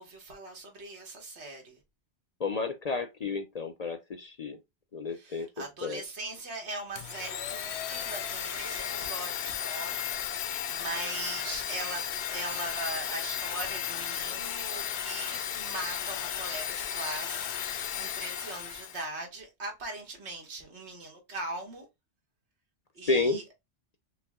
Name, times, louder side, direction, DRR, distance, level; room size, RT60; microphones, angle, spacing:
voice 1, 0.0-1.8 5.1-12.0 12.3-21.9 23.0-23.4, right 2 dB, 80° right, 1.6 m, -40 dB
voice 2, 2.4-4.6 4.9-5.5 5.8-6.0 23.1-23.4, left 3 dB, 50° left, 0.5 m, -31 dB
Domestic sounds home sounds, 7.0-19.1, left 9 dB, 80° left, 0.8 m, -34 dB
5.4 x 2.1 x 3.5 m
omnidirectional pair, 1.1 m